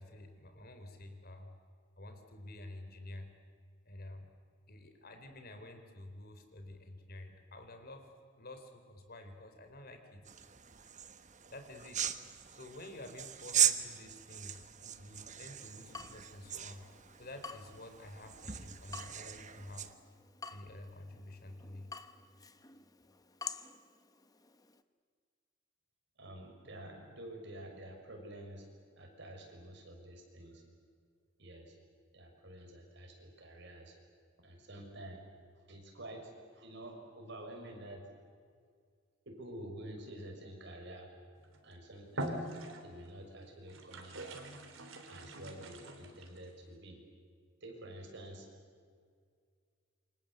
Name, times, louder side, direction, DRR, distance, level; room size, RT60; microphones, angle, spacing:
voice 1, 0.0-1.5 2.0-3.3 3.9-4.3 4.7-8.1 8.4-10.2 11.5-12.1 12.6-16.9 17.2-19.9 20.5-21.9, left 1 dB, 50° left, 7 dB, 3.8 m, -50 dB
sound 1, 10.2-19.9, right 10 dB, 40° right, 1.3 m, -38 dB
Water tap faucet / Drip, 15.5-24.8, left 5 dB, 20° left, 1.0 m, -50 dB
voice 2, 26.2-28.6 29.0-30.6 31.4-31.7 32.1-33.9 34.4-35.2 35.7-38.0 39.3-41.1 41.6-42.5 42.8-44.2 45.1-47.0 47.6-48.4, right 1 dB, 65° right, 2 dB, 6.5 m, -49 dB
sound 2, 41.4-41.7 42.1-43.1 43.7-46.4, right 1 dB, 85° right, 3.7 m, -43 dB
28.5 x 25.5 x 8.0 m, 2.1 s
head